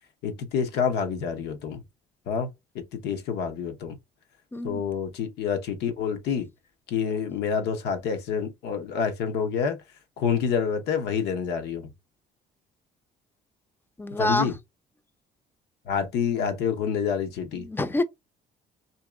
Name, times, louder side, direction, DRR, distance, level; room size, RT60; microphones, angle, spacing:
voice 1, 0.2-1.8 2.3-2.5 2.7-4.0 4.6-6.5 6.9-9.8 10.2-11.9 14.2-14.5 15.9-17.7, left 7 dB, 80° left, 0.9 m, -27 dB
voice 2, 4.5-4.8 14.0-14.5 17.5-18.0, left 1 dB, 10° left, 0.5 m, -26 dB
2.9 x 2.8 x 3.6 m
cardioid pair, 110°, 17 cm